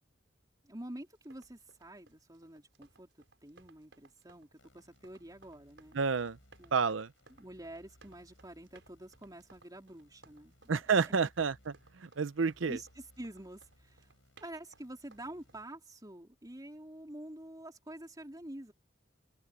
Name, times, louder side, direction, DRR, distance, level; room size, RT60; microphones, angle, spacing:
voice 1, 0.6-3.1 3.4-6.0 6.6-6.8 7.4-11.2 12.7-14.1 14.4-18.7, right 1 dB, 20° right, 3.5 m, -48 dB
sound 1, 1.1-15.6, right 3 dB, 70° right, 6.0 m, -64 dB
sound 2, 4.6-15.6, left 1 dB, 85° left, 6.3 m, -66 dB
voice 2, 5.9-6.4 6.7-7.1 10.7-11.5 12.0-12.8, right 5 dB, 85° right, 0.7 m, -29 dB
open air
head